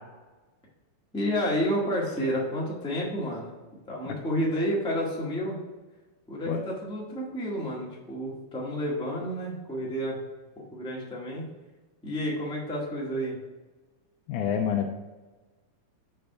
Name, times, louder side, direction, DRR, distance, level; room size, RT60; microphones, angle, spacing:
voice 1, 1.1-3.5 3.9-5.6 6.3-10.2 10.6-11.4 12.0-13.3, equal, 5° left, -5 dB, 0.4 m, -30 dB
voice 2, 14.3-14.9, left 8 dB, 85° left, 1 dB, 2.1 m, -27 dB
6.6 x 3.4 x 5.6 m, 1.2 s
omnidirectional pair, 3.5 m